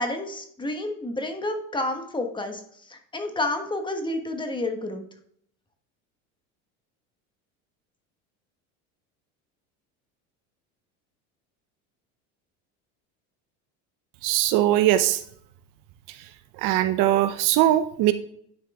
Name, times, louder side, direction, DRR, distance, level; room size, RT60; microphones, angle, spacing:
voice 1, 0.0-2.6 2.9-5.0, left 2 dB, 15° left, 5 dB, 1.3 m, -30 dB
voice 2, 14.2-15.2 16.1-16.3 16.6-18.1, right 13 dB, 65° right, 12 dB, 0.7 m, -21 dB
10.5 x 4.7 x 3.6 m, 0.66 s
supercardioid pair, 115°, 35 cm